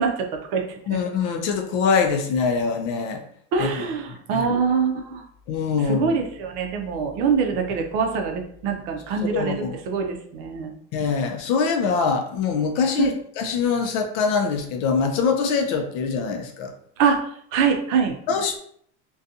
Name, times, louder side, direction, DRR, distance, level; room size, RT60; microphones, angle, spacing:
voice 1, 0.0-1.0 3.5-5.2 5.8-10.8 13.0-13.1 17.0-18.2, right 6 dB, 60° right, 3 dB, 0.6 m, -24 dB
voice 2, 0.9-3.2 3.6-3.7 4.3-4.5 5.5-6.1 9.3-9.8 10.9-16.7 18.3-18.6, left 5 dB, 50° left, 4 dB, 0.4 m, -23 dB
2.5 x 2.3 x 2.6 m, 0.63 s
cardioid pair, 175°, 39 cm